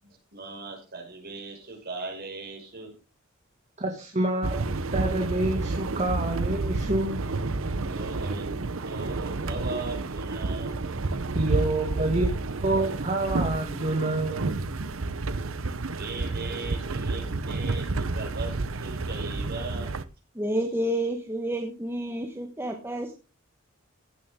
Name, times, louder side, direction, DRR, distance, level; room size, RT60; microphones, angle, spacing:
voice 1, 0.0-2.9 7.8-8.6 8.8-10.7 15.3-15.4 15.9-19.9, right 3 dB, 50° right, 0 dB, 6.1 m, -38 dB
voice 2, 3.8-4.6 4.9-7.2 11.3-12.3 12.6-14.6, right 2 dB, 35° right, 1 dB, 2.1 m, -27 dB
sound 1, 4.4-20.0, right 3 dB, 70° right, 0.9 m, -30 dB
voice 3, 20.3-23.1, right 1 dB, 10° right, 2 dB, 1.4 m, -29 dB
16.0 x 9.0 x 3.7 m, 0.32 s
head